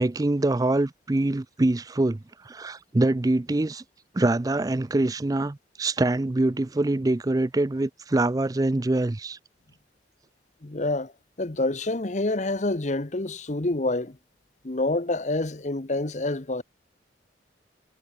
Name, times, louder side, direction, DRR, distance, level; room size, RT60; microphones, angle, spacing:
voice 1, 0.0-3.8 4.1-9.4, right 2 dB, 20° right, 0.4 m, -24 dB
voice 2, 10.6-11.1 11.4-14.2 14.6-16.6, left 2 dB, 40° left, 1.0 m, -27 dB
head